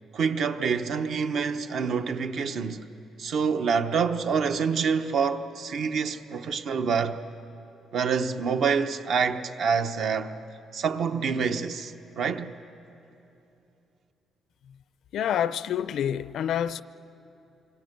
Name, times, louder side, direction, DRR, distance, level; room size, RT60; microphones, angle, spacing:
voice 1, 0.1-2.9 3.2-7.2 7.9-10.4 10.7-12.5, right 6 dB, 50° right, 0.8 m, -27 dB
voice 2, 15.1-16.8, left 9 dB, 60° left, 0.5 m, -27 dB
26.5 x 24.5 x 6.7 m
cardioid pair, 170°, 0 cm